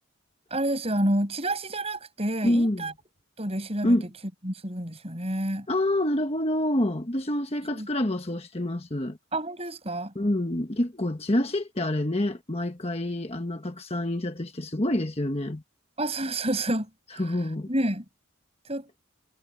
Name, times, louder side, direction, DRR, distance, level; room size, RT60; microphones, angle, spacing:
voice 1, 0.5-2.9 3.4-4.0 4.4-5.7 7.7-7.9 9.3-10.1 16.0-17.2 17.7-18.0 18.7-18.9, right 1 dB, 30° right, 7.2 m, -29 dB
voice 2, 2.4-2.9 3.8-4.1 5.7-9.2 10.1-15.6 17.2-17.7, left 1 dB, 30° left, 1.3 m, -27 dB
head